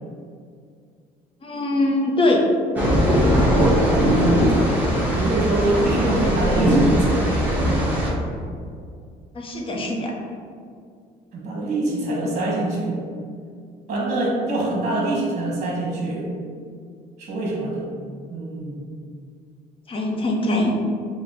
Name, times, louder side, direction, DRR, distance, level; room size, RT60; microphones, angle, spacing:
voice 1, 1.4-2.4 9.3-10.1 19.9-20.7, left 1 dB, 30° left, -1 dB, 0.7 m, -22 dB
sound 1, 2.8-8.1, equal, 10° right, 1.1 m, -19 dB
voice 2, 4.1-4.6 5.1-7.6 11.3-12.9 13.9-16.3 17.2-17.9 18.3-18.8, right 2 dB, 45° right, -4 dB, 1.2 m, -25 dB
4.7 x 2.2 x 3.5 m, 2.2 s
cardioid pair, 110°, 17 cm